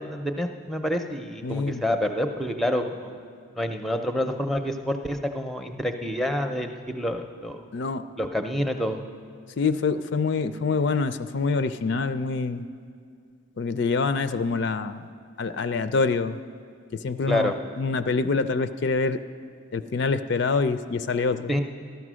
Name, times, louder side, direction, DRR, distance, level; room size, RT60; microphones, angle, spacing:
voice 1, 0.0-3.2 3.6-7.6 8.2-9.0 17.3-17.6 21.5-21.6, left 1 dB, ahead, 6 dB, 0.5 m, -28 dB
voice 2, 1.4-1.8 7.7-8.0 9.6-12.7 13.6-15.1 15.4-16.4 16.9-19.2 19.7-21.5, left 4 dB, 55° left, 11 dB, 0.4 m, -26 dB
13.5 x 11.5 x 6.2 m, 2.2 s
head